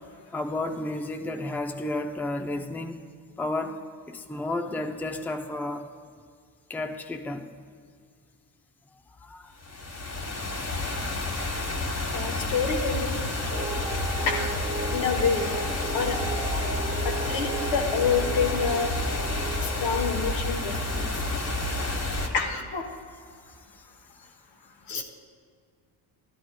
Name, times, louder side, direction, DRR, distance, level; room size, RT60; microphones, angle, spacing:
voice 1, 0.3-3.0 3.4-3.8 4.1-5.9 6.7-7.5 9.2-9.5 13.4-13.5, left 2 dB, 5° left, 6 dB, 0.5 m, -32 dB
sound 1, 9.6-22.3, left 2 dB, 35° left, 1.3 m, -30 dB
voice 2, 12.1-13.2 14.3-14.5 14.9-15.5 15.9-16.2 17.0-18.9 19.8-21.1 22.3-22.8 24.9-25.0, left 6 dB, 85° left, 3 dB, 1.3 m, -27 dB
sound 2, 13.5-20.4, right 3 dB, 20° right, 0.9 m, -36 dB
12.0 x 11.0 x 2.3 m, 2.2 s
cardioid pair, 75°, 47 cm